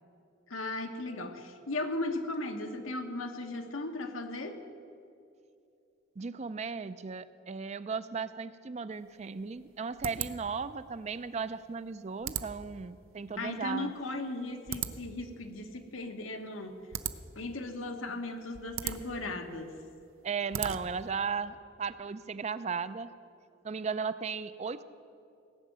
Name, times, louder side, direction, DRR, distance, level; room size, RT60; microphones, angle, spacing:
voice 1, 0.5-4.6 13.4-16.8 17.3-19.7, left 2 dB, 85° left, 5 dB, 1.2 m, -37 dB
voice 2, 6.2-13.9 20.2-23.1 23.6-24.8, right 5 dB, 35° right, 13 dB, 0.4 m, -36 dB
sound 1, 9.0-21.2, right 9 dB, 90° right, 0.6 m, -41 dB
17.5 x 6.5 x 9.2 m, 2.5 s
head